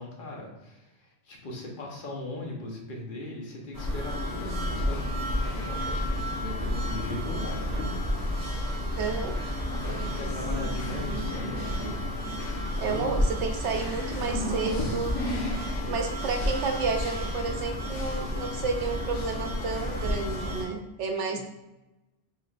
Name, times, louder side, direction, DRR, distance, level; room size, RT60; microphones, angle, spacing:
voice 1, 0.0-7.9 9.7-12.1 12.8-13.1 15.8-15.9 21.3-21.4, left 2 dB, 50° left, -1 dB, 1.1 m, -39 dB
sound 1, 3.7-20.6, left 1 dB, 80° left, 1.5 m, -31 dB
voice 2, 8.9-9.4 12.8-15.2 15.9-21.4, right 4 dB, 75° right, 4 dB, 0.9 m, -31 dB
5.8 x 3.6 x 2.4 m, 1.0 s
omnidirectional pair, 1.2 m